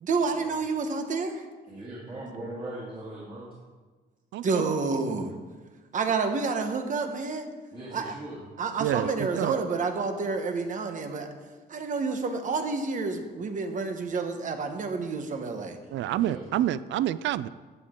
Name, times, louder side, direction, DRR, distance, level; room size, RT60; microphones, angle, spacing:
voice 1, 0.0-1.4 4.4-5.3 5.9-7.4 7.9-8.1 8.6-11.3 11.7-15.8, right 4 dB, 45° right, 6 dB, 1.2 m, -29 dB
voice 2, 1.7-3.5 7.7-8.4 16.1-16.5, right 1 dB, 30° right, -8 dB, 2.8 m, -40 dB
voice 3, 4.3-4.6 8.8-9.1 9.4-9.6 15.9-17.5, right 12 dB, 85° right, 17 dB, 0.4 m, -28 dB
15.0 x 8.7 x 3.8 m, 1.3 s
cardioid pair, 160°, 19 cm